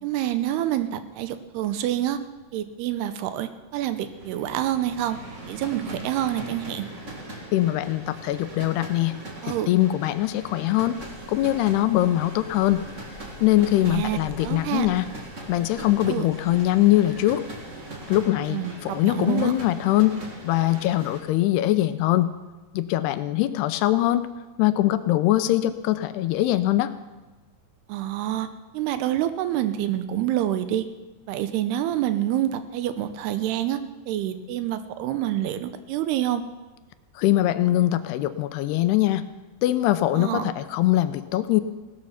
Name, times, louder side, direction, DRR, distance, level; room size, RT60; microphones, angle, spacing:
voice 1, 0.0-2.2 2.5-5.2 5.5-6.9 9.4-9.7 13.8-14.9 16.1-16.3 18.5-18.7 19.0-19.5 27.9-28.5 28.7-30.9 31.3-33.8 34.1-36.4 40.1-40.5, right 12 dB, 80° right, 11 dB, 2.8 m, -27 dB
sound 1, 3.8-21.2, right 1 dB, 35° right, 1.1 m, -40 dB
voice 2, 7.5-9.1 9.5-11.0 11.3-12.9 13.4-15.1 15.5-17.4 18.1-20.2 20.4-22.3 22.7-24.2 24.6-26.9 37.2-39.2 39.6-41.6, left 14 dB, 85° left, 12 dB, 2.7 m, -22 dB
sound 2, 10.9-18.2, left 1 dB, 15° right, 5.6 m, -48 dB
17.5 x 12.5 x 5.8 m, 1.2 s
omnidirectional pair, 4.7 m